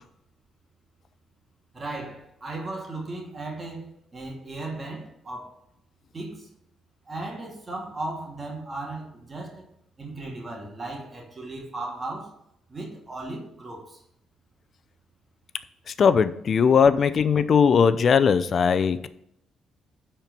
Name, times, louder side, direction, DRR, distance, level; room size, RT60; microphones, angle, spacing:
voice 1, 1.7-5.5 6.1-6.5 7.1-9.6 10.0-12.4 12.7-14.0, right 2 dB, 30° right, 2.3 m, -36 dB
voice 2, 16.0-19.1, left 6 dB, 50° left, 0.5 m, -19 dB
10.0 x 4.5 x 5.4 m
cardioid pair, 90°, 0 cm